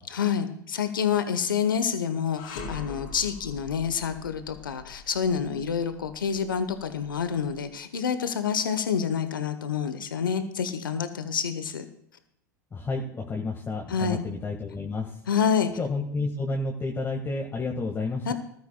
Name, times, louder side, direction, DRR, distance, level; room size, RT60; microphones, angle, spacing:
voice 1, 0.1-11.9 13.9-14.2 15.3-15.7 18.3-18.4, left 7 dB, 85° left, 10 dB, 1.1 m, -28 dB
sound 1, 2.4-7.6, left 4 dB, 70° left, 3.6 m, -43 dB
voice 2, 12.7-15.2 15.8-18.3, left 3 dB, 20° left, 0 dB, 1.8 m, -30 dB
19.5 x 13.0 x 2.3 m, 0.74 s
hypercardioid pair, 90°, 11 cm